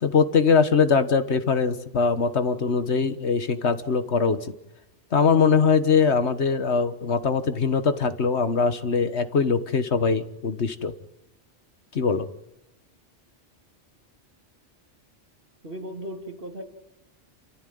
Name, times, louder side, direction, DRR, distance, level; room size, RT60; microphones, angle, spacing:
voice 1, 0.0-4.4 5.1-10.9 11.9-12.3, left 5 dB, 65° left, 10 dB, 1.6 m, -22 dB
voice 2, 15.6-16.6, equal, 50° right, 4 dB, 3.1 m, -36 dB
29.0 x 14.0 x 9.3 m, 0.91 s
omnidirectional pair, 1.2 m